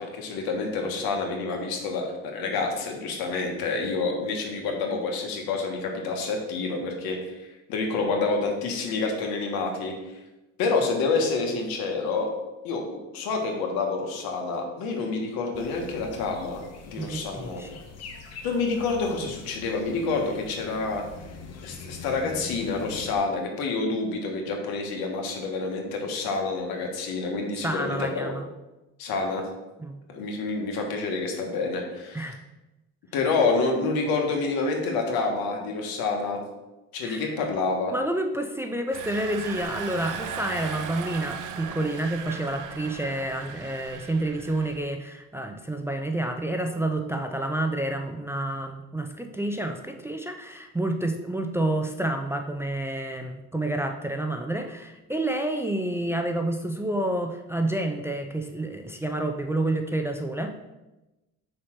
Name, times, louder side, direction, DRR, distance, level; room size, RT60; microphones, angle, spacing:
voice 1, 0.0-7.2 7.7-9.9 10.6-12.3 12.6-17.6 18.4-21.0 21.6-28.3 29.0-29.4 30.1-32.3 33.1-36.4 36.9-37.9, left 3 dB, 80° left, 2 dB, 1.5 m, -28 dB
sound 1, 15.5-23.2, left 4 dB, 45° left, 1.0 m, -43 dB
voice 2, 17.0-17.7 27.6-28.5 29.8-30.0 32.1-32.4 37.0-37.3 37.9-60.7, right 1 dB, 5° right, 4 dB, 0.4 m, -29 dB
Engine, 38.9-44.8, right 7 dB, 60° right, 0.7 m, -37 dB
4.9 x 4.3 x 5.7 m, 1.0 s
cardioid pair, 110°, 36 cm